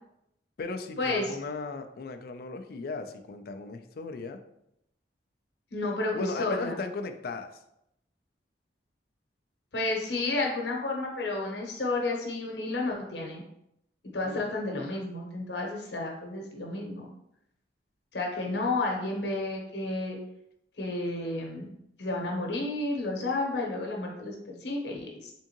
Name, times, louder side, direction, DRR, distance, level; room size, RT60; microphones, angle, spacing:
voice 1, 0.6-4.4 6.1-7.5 14.2-14.5, left 3 dB, 55° left, 7 dB, 0.4 m, -37 dB
voice 2, 5.7-6.7 9.7-13.4 14.1-17.0 18.1-20.2 20.8-21.7 22.0-25.3, left 2 dB, 75° left, 0 dB, 1.0 m, -31 dB
3.7 x 3.5 x 2.9 m, 0.79 s
head